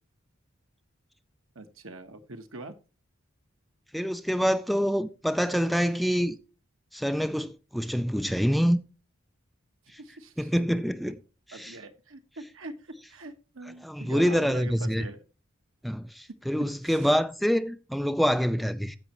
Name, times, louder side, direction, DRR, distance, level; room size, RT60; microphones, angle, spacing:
voice 1, 1.5-2.8 9.8-10.5 11.5-15.2 16.8-17.1, right 2 dB, 85° right, 1.3 m, -43 dB
voice 2, 3.9-6.4 6.9-8.8 10.4-11.2 11.5-11.7 13.8-15.1 15.8-19.0, equal, ahead, 0.4 m, -26 dB
15.0 x 5.4 x 3.0 m
head